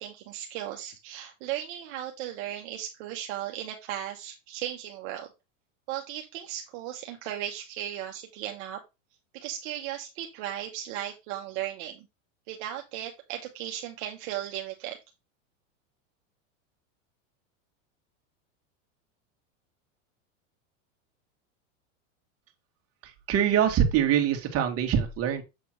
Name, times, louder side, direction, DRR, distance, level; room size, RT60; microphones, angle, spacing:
voice 1, 0.0-5.3 5.9-8.8 9.3-12.1 12.5-15.0, right 12 dB, 60° right, 3 dB, 1.2 m, -36 dB
voice 2, 23.0-25.4, right 9 dB, 40° right, 4 dB, 1.9 m, -24 dB
7.7 x 3.4 x 4.5 m, 0.24 s
supercardioid pair, 120°, 38 cm